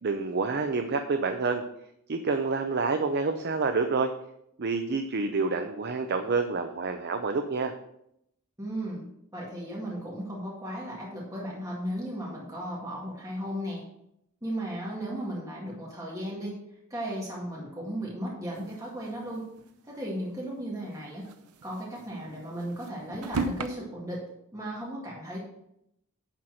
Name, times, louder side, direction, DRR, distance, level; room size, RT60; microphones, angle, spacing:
voice 1, 0.0-1.6 2.1-4.1 4.6-7.7, right 4 dB, 50° right, 7 dB, 0.6 m, -28 dB
voice 2, 8.6-13.8 14.4-16.6 16.9-19.5 19.8-21.3 21.6-24.2 24.5-25.5, equal, 15° right, -5 dB, 2.2 m, -35 dB
sound 1, 18.6-19.7 20.1-20.2 20.4-20.5 21.1-23.7, right 3 dB, 85° right, 0.7 m, -36 dB
10.5 x 4.4 x 6.3 m, 0.78 s
head